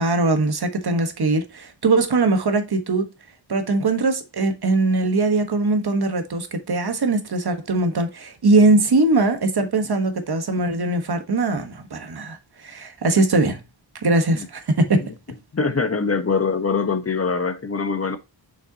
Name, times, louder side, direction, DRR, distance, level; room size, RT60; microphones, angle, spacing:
voice 1, 0.0-3.1 3.5-12.4 12.6-13.6 14.0-15.1, right 2 dB, 55° right, 1.4 m, -21 dB
voice 2, 15.5-18.2, left 4 dB, 30° left, 1.1 m, -23 dB
6.6 x 5.7 x 2.9 m
wide cardioid pair, 90°, 44 cm